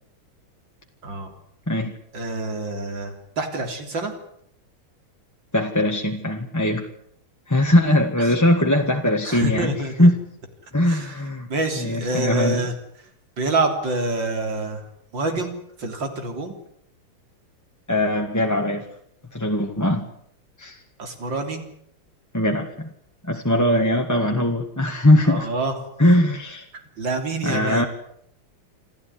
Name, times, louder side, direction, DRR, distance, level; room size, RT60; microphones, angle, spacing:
voice 1, 1.0-1.3 2.1-4.1 8.2-8.4 9.2-10.1 10.8-12.7 13.4-14.8 15.1-16.5 21.0-21.6 25.2-25.8 26.7-27.9, right 2 dB, 60° right, 6 dB, 4.2 m, -27 dB
voice 2, 5.5-6.8 7.5-9.7 10.0-10.1 10.7-11.5 11.8-12.6 17.9-18.9 19.3-20.1 20.6-20.8 22.3-22.9 23.2-25.5 26.0-26.7 27.4-27.9, left 1 dB, 10° left, 2 dB, 1.5 m, -20 dB
27.5 x 14.5 x 9.7 m, 0.71 s
omnidirectional pair, 2.4 m